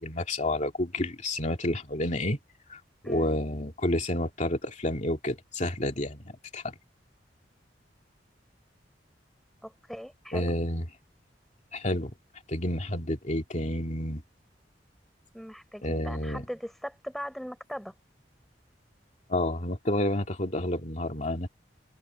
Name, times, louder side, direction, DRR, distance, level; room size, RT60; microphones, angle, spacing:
voice 1, 0.0-2.4 2.7-2.8 3.0-6.7 10.3-10.9 11.7-12.1 12.5-14.2 15.8-16.4 19.3-21.5, left 1 dB, 45° left, 2.6 m, -30 dB
voice 2, 9.6-10.5 15.3-17.9, equal, ahead, 4.3 m, -39 dB
head